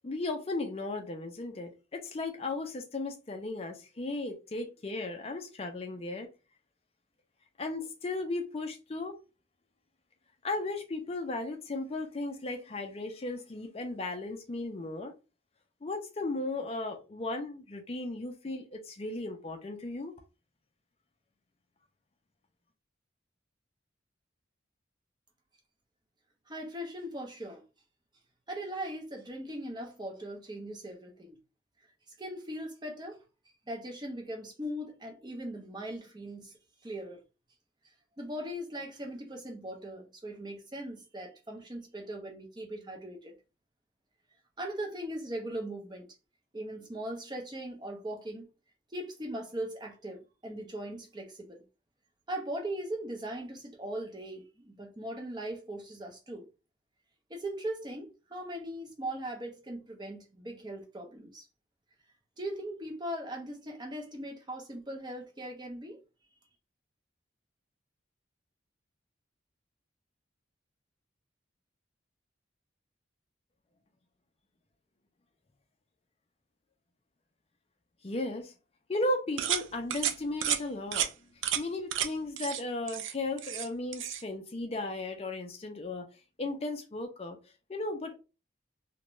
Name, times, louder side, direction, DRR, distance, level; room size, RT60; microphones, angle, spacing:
voice 1, 0.0-6.3 7.6-9.1 10.4-15.1 15.8-20.1 78.0-78.5 78.9-81.1 81.6-86.1 86.4-87.4 87.7-88.2, left 2 dB, 30° left, 0.4 m, -35 dB
voice 2, 26.5-27.6 28.5-31.3 32.2-33.2 33.7-36.5 36.8-37.2 38.2-43.3 44.6-46.1 46.5-48.5 48.9-51.6 52.3-56.5 57.3-61.5 62.4-66.0, right 1 dB, 20° right, 0.6 m, -39 dB
sound 1, 79.4-79.6 79.9-80.1 80.4-80.6 80.9-81.1 81.4-81.6 81.9-82.1 82.4-82.6 82.9-83.7 83.9-84.2, right 10 dB, 80° right, 0.3 m, -31 dB
2.5 x 2.1 x 3.0 m
head